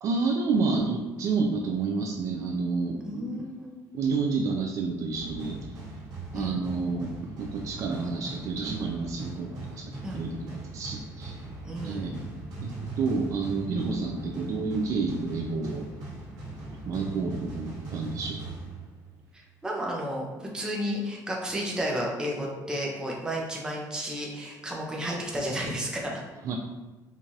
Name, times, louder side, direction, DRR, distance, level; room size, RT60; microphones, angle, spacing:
voice 1, 0.0-3.4 3.9-5.6 6.3-7.1 7.4-11.4 11.8-12.2 12.6-15.9 16.9-18.5 26.4-26.6, right 4 dB, 50° right, 1 dB, 0.3 m, -29 dB
voice 2, 3.0-3.7 6.3-6.6 10.0-10.3 11.6-12.1 19.3-20.3 20.5-26.3, equal, 10° right, -2 dB, 0.6 m, -32 dB
sound 1, 5.1-19.3, right 2 dB, 75° right, 1.5 m, -40 dB
4.5 x 2.5 x 2.7 m, 1.2 s
cardioid pair, 155°, 7 cm